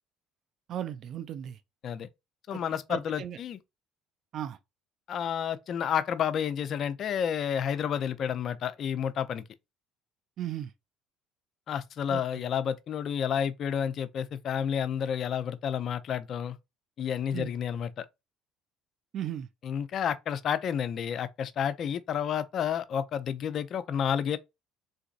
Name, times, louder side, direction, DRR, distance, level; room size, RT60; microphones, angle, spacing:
voice 1, 0.7-1.6 2.5-2.6 2.9-3.4 4.3-4.6 10.4-10.7 12.1-12.2 17.3-17.5 19.1-19.5, right 10 dB, 55° right, 0.4 m, -36 dB
voice 2, 2.5-3.6 5.1-9.4 11.7-16.6 17.0-18.1 19.6-24.4, left 8 dB, 50° left, 0.5 m, -30 dB
3.9 x 2.5 x 2.5 m
supercardioid pair, 80°, 0 cm